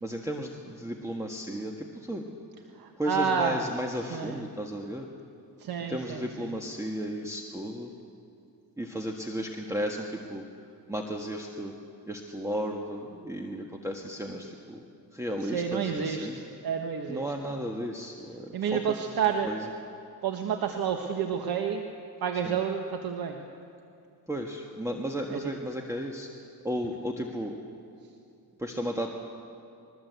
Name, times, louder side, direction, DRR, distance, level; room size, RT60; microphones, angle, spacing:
voice 1, 0.0-2.3 3.0-5.1 5.9-7.9 8.8-10.4 10.9-11.7 12.1-14.8 15.1-16.4 17.1-18.8 19.4-19.6 22.4-22.6 24.3-26.3 26.6-27.5 28.6-29.1, equal, 5° right, 2 dB, 1.6 m, -34 dB
voice 2, 2.7-3.6 4.0-4.5 5.6-6.6 15.4-17.3 18.5-19.5 20.2-21.8 22.2-23.4 25.3-25.4, right 7 dB, 60° right, 4 dB, 1.5 m, -30 dB
22.0 x 20.0 x 8.2 m, 2.5 s
cardioid pair, 105°, 40 cm